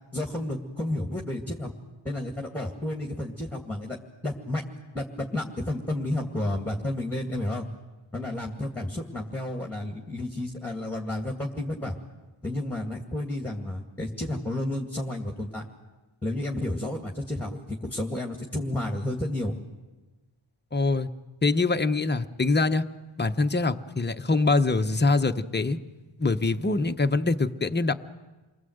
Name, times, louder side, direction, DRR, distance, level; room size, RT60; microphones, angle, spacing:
voice 1, 0.1-1.7 2.0-4.0 4.2-4.6 4.9-7.7 8.1-11.9 12.4-15.6 16.2-19.6, left 1 dB, 5° left, 1 dB, 2.0 m, -31 dB
voice 2, 20.7-21.1 21.4-22.8 23.2-25.8 26.2-27.9, left 3 dB, 20° left, 7 dB, 0.9 m, -24 dB
28.5 x 22.5 x 7.9 m, 1.2 s
wide cardioid pair, 130°, 50 cm